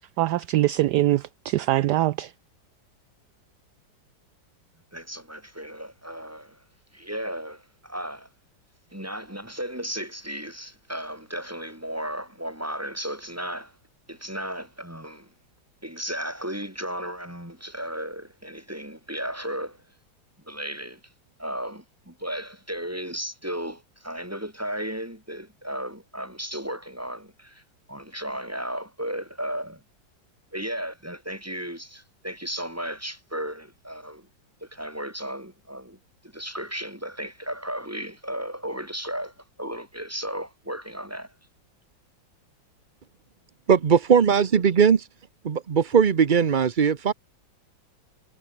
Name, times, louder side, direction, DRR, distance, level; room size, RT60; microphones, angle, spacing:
voice 1, 0.0-2.3, right 15 dB, 70° right, 1.1 m, -23 dB
voice 2, 4.9-6.6 6.9-8.3 8.9-13.8 14.1-15.3 15.8-19.8 20.5-21.0 21.4-27.6 27.9-29.8 30.5-34.3 34.6-36.0 36.3-41.3, equal, 5° right, 6.0 m, -34 dB
voice 3, 43.7-45.0 45.4-47.1, right 7 dB, 50° right, 0.5 m, -19 dB
omnidirectional pair, 2.0 m